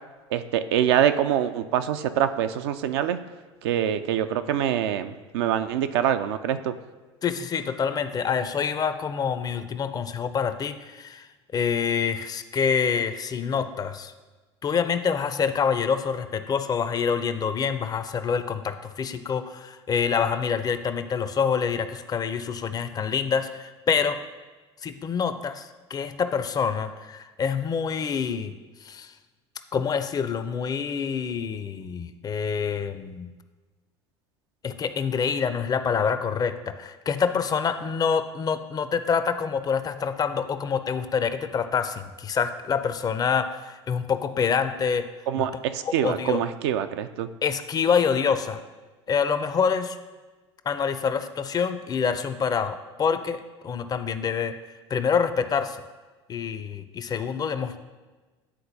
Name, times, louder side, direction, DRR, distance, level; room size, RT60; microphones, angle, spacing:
voice 1, 0.3-3.2 3.6-6.7 45.3-47.3, right 10 dB, 65° right, 10 dB, 0.4 m, -25 dB
voice 2, 7.2-11.3 11.5-14.1 14.6-24.2 24.8-28.5 28.8-29.1 29.7-33.3 34.6-45.0 45.4-45.5 45.8-46.4 47.4-48.6 49.1-50.0 50.7-54.5 54.9-55.8 56.3-57.8, left 6 dB, 25° left, 10 dB, 0.4 m, -26 dB
10.5 x 3.9 x 2.7 m, 1.2 s
hypercardioid pair, 75°, 15 cm